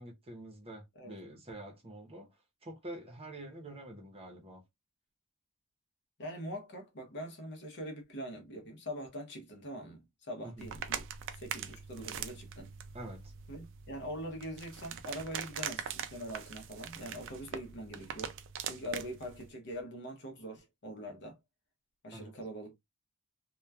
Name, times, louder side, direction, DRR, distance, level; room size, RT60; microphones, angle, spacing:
voice 1, 0.0-2.3 2.6-4.6 10.4-10.7 12.9-13.3 22.1-22.3, right 1 dB, 25° right, 0.8 m, -47 dB
voice 2, 6.2-11.0 11.4-12.7 13.5-18.3 18.6-21.4 22.0-22.7, equal, 55° left, 0.8 m, -43 dB
sound 1, 10.6-19.5, right 8 dB, 60° right, 0.4 m, -42 dB
2.9 x 2.2 x 2.2 m
head